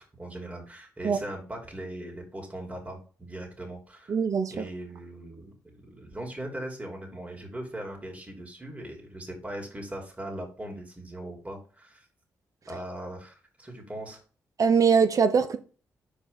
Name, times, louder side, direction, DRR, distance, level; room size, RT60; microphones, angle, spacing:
voice 1, 0.0-4.1 4.5-12.1 12.7-14.2, right 1 dB, 20° right, 2.7 m, -39 dB
voice 2, 4.1-4.6 14.6-15.6, right 6 dB, 60° right, 0.9 m, -22 dB
5.1 x 4.1 x 5.4 m
supercardioid pair, 55°, 7 cm